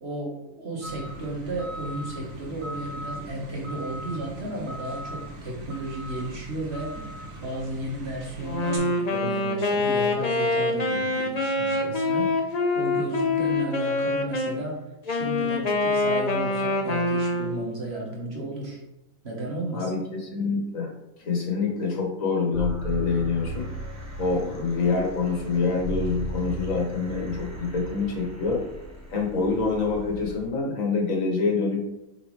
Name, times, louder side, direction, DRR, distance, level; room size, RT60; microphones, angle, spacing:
voice 1, 0.0-7.1 7.4-14.8 15.1-18.8 19.2-19.9, right 1 dB, 50° right, -2 dB, 1.6 m, -34 dB
sound 1, 0.8-8.8, right 1 dB, 70° right, 1.6 m, -39 dB
Wind instrument woodwind instrument, 8.4-14.6 15.1-17.7, left 2 dB, 40° left, 0.7 m, -25 dB
voice 2, 19.7-20.9 21.2-23.7 24.2-28.6 29.1-31.8, left 4 dB, 70° left, -1 dB, 1.8 m, -26 dB
sound 2, 22.5-30.5, right 1 dB, 10° right, 1.1 m, -36 dB
7.7 x 4.0 x 3.2 m, 0.91 s
omnidirectional pair, 1.5 m